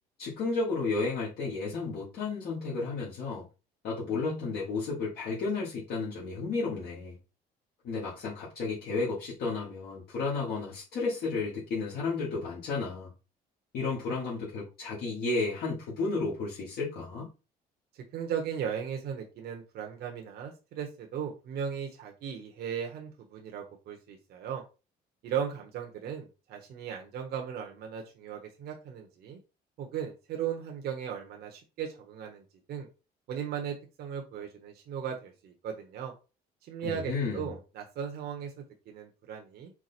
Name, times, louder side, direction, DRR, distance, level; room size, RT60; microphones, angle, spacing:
voice 1, 0.2-3.5 3.8-7.2 7.8-13.1 13.7-17.3 36.8-37.5, left 3 dB, 70° left, -6 dB, 1.6 m, -32 dB
voice 2, 18.1-24.6 25.2-29.4 29.8-32.9 33.3-36.1 36.6-39.7, right 8 dB, 70° right, 3 dB, 1.0 m, -37 dB
4.7 x 2.2 x 4.3 m, 0.31 s
cardioid pair, 110°, 17 cm